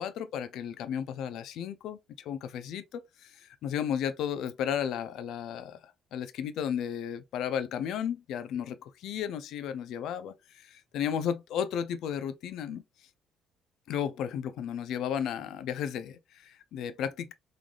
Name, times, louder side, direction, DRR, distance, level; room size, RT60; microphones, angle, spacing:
voice 1, 0.0-12.8 13.9-17.3, left 8 dB, 60° left, 0.4 m, -34 dB
3.8 x 3.3 x 2.4 m
cardioid pair, 170°, 0 cm